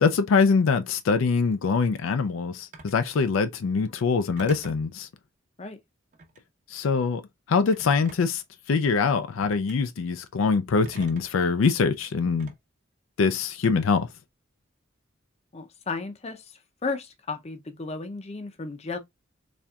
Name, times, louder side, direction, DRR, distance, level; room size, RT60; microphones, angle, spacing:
voice 1, 0.0-5.1 6.7-7.2 7.5-8.4 8.7-12.5 13.2-14.1, left 5 dB, 85° left, 0.4 m, -23 dB
Telephone, 2.7-3.0 4.4-4.9 6.1-6.5 7.7-8.4 9.4-9.8 10.8-11.4 12.4-12.5 13.6-14.0, right 3 dB, 40° right, 0.9 m, -46 dB
voice 2, 15.5-19.0, left 3 dB, 30° left, 0.6 m, -34 dB
4.3 x 3.4 x 2.3 m
head